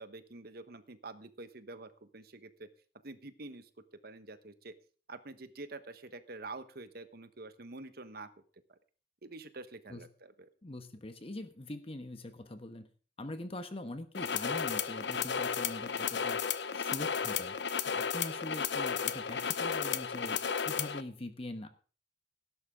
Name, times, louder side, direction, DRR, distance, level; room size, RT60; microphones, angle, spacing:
voice 1, 0.0-2.7 3.0-3.7 4.0-4.7 5.1-8.3 9.2-10.5, right 2 dB, 60° right, 10 dB, 1.3 m, -47 dB
voice 2, 10.6-12.9 13.2-16.4 16.7-17.6 17.8-20.4 20.7-21.7, left 1 dB, 35° left, 9 dB, 1.1 m, -43 dB
sound 1, 14.1-21.0, left 7 dB, 75° left, 0.8 m, -33 dB
18.0 x 11.0 x 3.7 m, 0.38 s
head